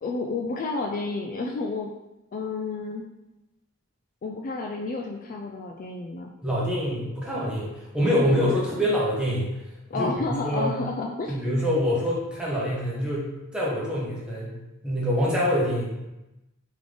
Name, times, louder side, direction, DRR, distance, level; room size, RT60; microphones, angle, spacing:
voice 1, 0.0-1.9 2.3-3.0 4.2-6.3 9.9-11.3, left 3 dB, 40° left, 1 dB, 0.3 m, -30 dB
voice 2, 6.4-9.5 9.9-10.8 11.3-14.6 14.8-15.9, equal, 5° right, -6 dB, 1.1 m, -25 dB
3.7 x 3.5 x 3.4 m, 0.95 s
head